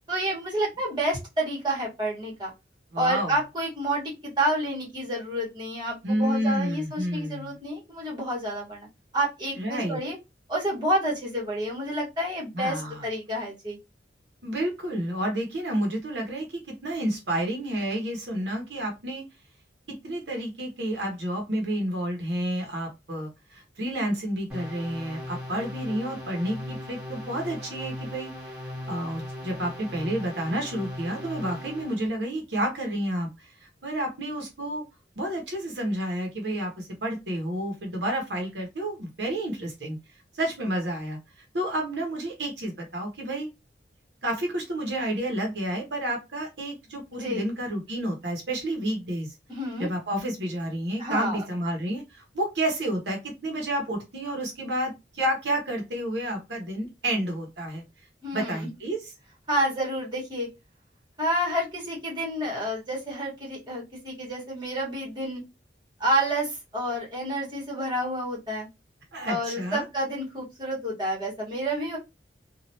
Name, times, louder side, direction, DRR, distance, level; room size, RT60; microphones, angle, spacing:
voice 1, 0.1-2.5 2.9-8.9 9.1-10.2 10.5-13.8 47.2-47.4 49.5-49.9 51.0-51.4 58.2-58.7 59.5-60.5 61.2-65.4 66.0-68.7 69.2-72.0, right 1 dB, 25° right, -3 dB, 1.5 m, -29 dB
voice 2, 2.9-3.3 6.0-7.6 9.6-10.0 12.5-13.1 14.4-19.2 19.9-28.6 28.9-34.8 35.2-40.0 40.3-41.2 41.5-43.5 44.2-49.3 49.8-57.8 58.3-59.1 69.1-69.8, right 1 dB, 75° right, 1 dB, 1.0 m, -30 dB
sound 1, 24.5-32.1, left 1 dB, 5° right, 1.5 m, -38 dB
3.1 x 2.4 x 2.8 m, 0.23 s
head